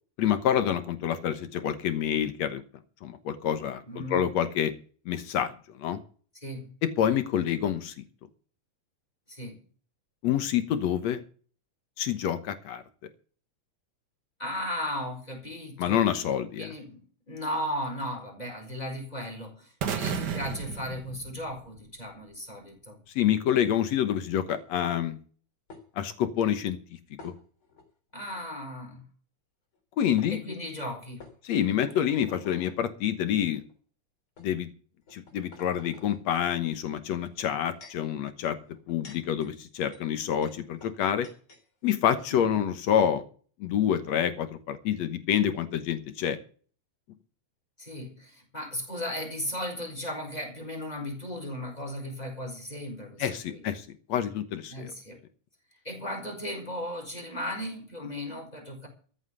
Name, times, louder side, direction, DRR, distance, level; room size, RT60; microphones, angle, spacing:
voice 1, 0.2-2.6 3.0-4.7 5.1-6.0 6.8-8.0 10.2-11.2 12.0-12.8 15.8-16.7 23.2-25.2 26.0-26.8 27.2-27.3 30.0-30.4 31.4-33.6 34.4-34.7 35.1-38.6 38.9-41.3 41.8-43.2 43.6-46.4 53.2-54.9, left 9 dB, 60° left, 2.0 m, -27 dB
voice 2, 3.9-4.3 6.4-6.7 9.3-9.6 14.4-16.0 16.6-23.0 28.1-29.0 30.3-31.3 42.3-42.6 47.8-53.6 54.7-55.2 55.8-58.9, left 1 dB, 10° left, 4.4 m, -36 dB
sound 1, 19.8-21.9, right 7 dB, 75° right, 0.9 m, -33 dB
sound 2, 24.5-25.0 25.7-25.8 27.2-27.8 28.3-28.4 29.7-29.8 30.2-30.3 31.2-32.8 33.6-33.7 34.4-34.5 35.0-36.2 37.3-38.1 38.7-41.6 41.9-42.0 42.2-42.5, left 3 dB, 35° left, 4.1 m, -51 dB
14.0 x 7.7 x 8.1 m
omnidirectional pair, 3.9 m